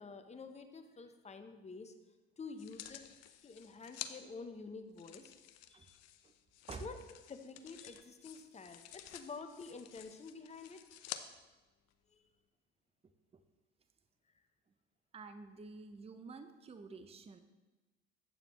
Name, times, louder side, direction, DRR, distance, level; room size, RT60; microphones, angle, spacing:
voice 1, 0.0-1.9 2.4-3.0 3.4-5.3 5.7-6.0 6.8-7.0 7.3-10.8 12.1-12.3, left 4 dB, 20° left, 7 dB, 0.9 m, -49 dB
sound 1, 2.6-4.1 5.0-11.2 11.9-12.0, left 12 dB, 55° left, 0.6 m, -51 dB
voice 2, 15.1-17.4, right 4 dB, 20° right, 9 dB, 0.6 m, -49 dB
8.6 x 6.8 x 3.1 m, 1.1 s
hypercardioid pair, 65°, 31 cm